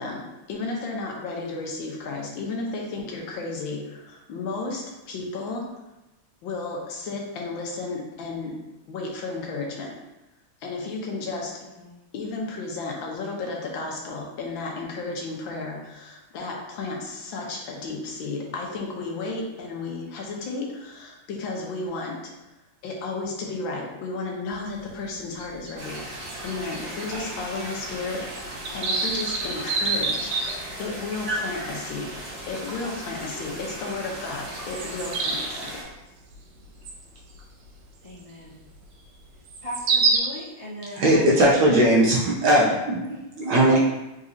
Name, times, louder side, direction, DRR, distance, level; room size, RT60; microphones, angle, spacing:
voice 1, 0.0-5.6 6.4-8.5 8.9-9.9 10.6-11.5 12.1-22.3 22.8-30.3 30.8-32.1 32.5-35.8, left 3 dB, 75° left, 0 dB, 1.5 m, -33 dB
sound 1, 24.5-24.6 24.9-25.0 25.4-27.1 27.4-27.5 27.9-28.0 28.3-31.0 31.6-31.7 32.1-32.3 32.7-32.9 33.8-33.9 34.3-35.7 36.9-37.1 37.5-37.6 39.5-40.2, right 4 dB, 90° right, 1.5 m, -26 dB
sound 2, 25.8-35.8, right 1 dB, 30° right, 0.7 m, -37 dB
voice 2, 38.0-38.6 39.6-41.4 43.6-43.8, equal, 30° left, -10 dB, 0.6 m, -37 dB
voice 3, 40.9-43.8, right 1 dB, 65° right, -4 dB, 1.2 m, -19 dB
4.1 x 3.8 x 2.7 m, 1.0 s
omnidirectional pair, 2.3 m